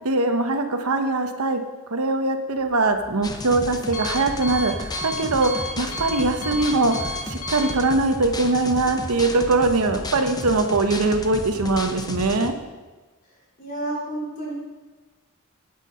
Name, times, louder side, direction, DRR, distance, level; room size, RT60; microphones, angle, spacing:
voice 1, 0.0-1.6 1.9-12.5, right 2 dB, 85° right, 6 dB, 1.0 m, -22 dB
Alarm, 2.5-8.9, equal, 65° left, 2.1 m, -35 dB
sound 1, 3.2-12.5, left 2 dB, 20° left, 0.6 m, -33 dB
voice 2, 13.6-14.5, right 2 dB, 40° left, -5 dB, 3.9 m, -30 dB
9.3 x 8.2 x 5.6 m, 1.3 s
head